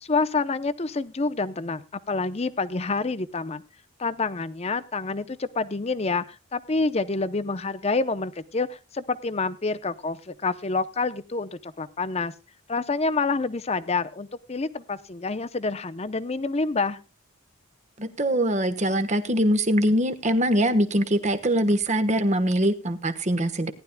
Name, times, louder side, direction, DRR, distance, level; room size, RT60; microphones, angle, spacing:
voice 1, 0.0-3.6 4.0-12.3 12.7-17.0, left 3 dB, 30° left, 12 dB, 0.6 m, -28 dB
voice 2, 18.0-23.7, right 1 dB, 35° right, 10 dB, 1.2 m, -23 dB
18.5 x 11.0 x 2.2 m, 0.31 s
head